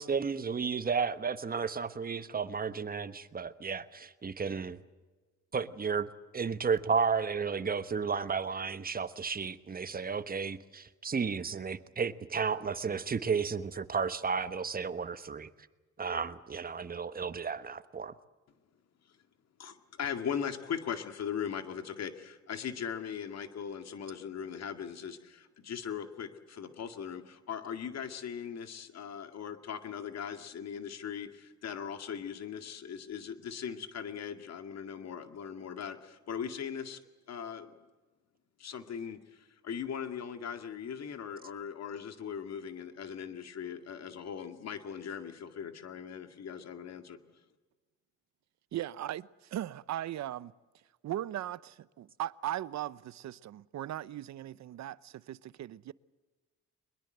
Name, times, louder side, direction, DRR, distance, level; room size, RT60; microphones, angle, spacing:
voice 1, 0.0-4.8 5.5-6.1 6.3-15.5 16.0-18.1, right 5 dB, 30° right, 1.2 m, -33 dB
voice 2, 19.6-37.0 37.3-37.7 38.6-47.2, left 7 dB, 60° left, 2.2 m, -39 dB
voice 3, 48.7-50.5 51.0-55.9, right 12 dB, 65° right, 0.8 m, -38 dB
22.5 x 21.5 x 7.9 m
cardioid pair, 90°, 30 cm